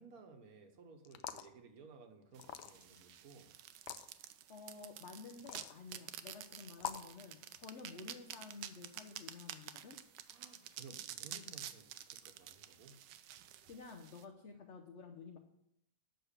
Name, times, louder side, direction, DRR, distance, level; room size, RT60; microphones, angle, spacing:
voice 1, 0.0-3.5 10.3-13.0, right 4 dB, 60° right, 5 dB, 1.5 m, -57 dB
sound 1, 1.0-1.5 2.4-3.0 3.7-4.1 5.3-5.8 6.8-7.1, left 10 dB, 75° left, 1.2 m, -44 dB
sound 2, 2.4-14.2, right 11 dB, 80° right, 1.2 m, -50 dB
voice 2, 4.5-10.0 13.6-15.4, left 4 dB, 55° left, 4 dB, 0.8 m, -52 dB
8.0 x 6.0 x 6.6 m, 0.78 s
omnidirectional pair, 1.9 m